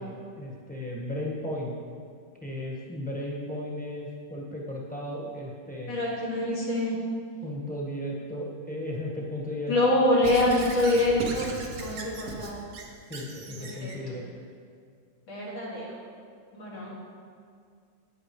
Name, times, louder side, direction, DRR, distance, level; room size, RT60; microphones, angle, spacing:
voice 1, 0.0-1.8 2.4-6.0 7.4-9.7 13.1-14.2, left 1 dB, 5° left, -4 dB, 1.2 m, -35 dB
voice 2, 5.9-6.9 9.7-12.7 13.6-13.9 15.3-15.9 16.5-16.9, left 1 dB, 80° left, -6 dB, 3.0 m, -25 dB
Squeak / Writing, 10.2-14.0, right 2 dB, 55° right, 1.3 m, -38 dB
11.5 x 9.3 x 3.2 m, 2.2 s
omnidirectional pair, 2.1 m